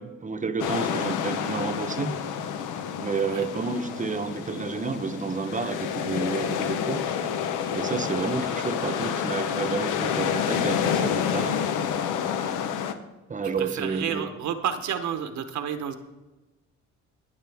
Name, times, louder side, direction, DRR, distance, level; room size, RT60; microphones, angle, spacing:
voice 1, 0.0-2.1 3.0-7.0 7.7-11.6 13.3-14.3, right 4 dB, 25° right, 9 dB, 0.9 m, -30 dB
sound 1, 0.6-12.9, left 8 dB, 85° left, 0.9 m, -28 dB
voice 2, 13.6-16.0, right 8 dB, 70° right, 8 dB, 1.0 m, -30 dB
18.5 x 7.3 x 3.5 m, 1.1 s
cardioid pair, 90°, 30 cm